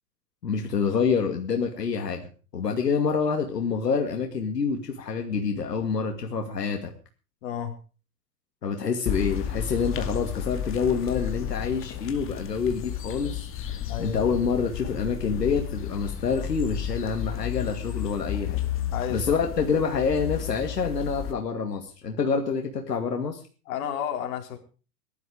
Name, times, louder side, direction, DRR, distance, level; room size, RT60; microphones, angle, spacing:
voice 1, 0.4-6.9 8.6-18.6 19.1-23.4, left 5 dB, 85° left, 4 dB, 2.5 m, -27 dB
voice 2, 7.4-7.8 13.8-14.2 18.9-19.4 23.7-24.6, left 9 dB, 55° left, 3 dB, 4.3 m, -32 dB
sound 1, 9.1-21.3, left 10 dB, 25° left, 2.2 m, -32 dB
17.5 x 12.0 x 5.0 m, 0.36 s
hypercardioid pair, 115°, 47 cm